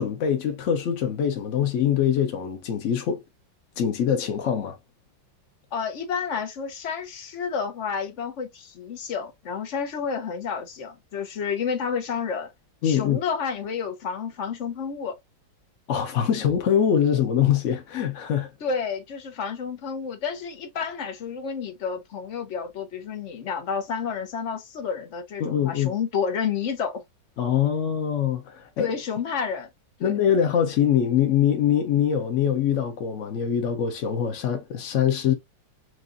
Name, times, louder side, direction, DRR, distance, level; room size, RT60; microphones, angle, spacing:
voice 1, 0.0-3.2 3.8-4.8 12.8-13.2 15.9-18.5 25.4-25.9 27.4-28.9 30.0-35.3, left 9 dB, 70° left, 0.7 m, -23 dB
voice 2, 5.7-12.5 12.8-15.2 18.6-27.0 28.8-29.7 30.0-30.1, left 6 dB, 50° left, 1.0 m, -30 dB
6.1 x 2.4 x 2.5 m
omnidirectional pair, 2.1 m